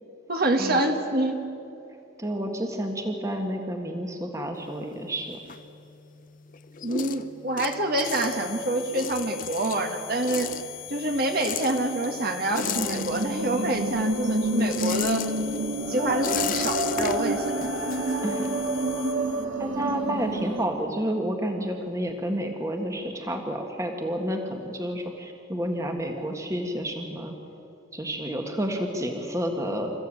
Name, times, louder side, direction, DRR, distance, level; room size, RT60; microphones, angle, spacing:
voice 1, 0.3-1.4 6.8-10.6 10.9-15.2 15.9-17.7, right 2 dB, 45° right, 4 dB, 1.8 m, -26 dB
voice 2, 2.2-5.4 18.2-18.5 19.6-27.3 27.9-29.9, equal, 15° right, 3 dB, 1.6 m, -30 dB
sound 1, 4.5-6.2 6.5-13.7 14.0-18.7, left 7 dB, 40° left, 0.7 m, -35 dB
sound 2, 8.0-19.4, left 15 dB, 85° left, 2.2 m, -41 dB
sound 3, 12.6-20.6, right 2 dB, 65° right, 2.4 m, -29 dB
27.5 x 15.0 x 9.0 m, 2.7 s
head